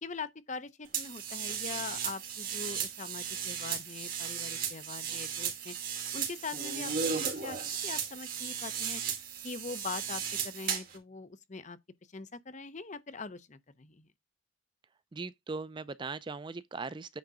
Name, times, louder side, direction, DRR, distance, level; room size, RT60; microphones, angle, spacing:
voice 1, 0.0-5.7 6.1-9.0 9.4-11.8 12.1-14.1, left 4 dB, 35° left, 0.7 m, -42 dB
sound 1, 0.9-11.0, right 7 dB, 45° right, 2.5 m, -35 dB
voice 2, 15.1-17.2, right 4 dB, 25° right, 0.4 m, -39 dB
9.4 x 3.9 x 4.8 m
head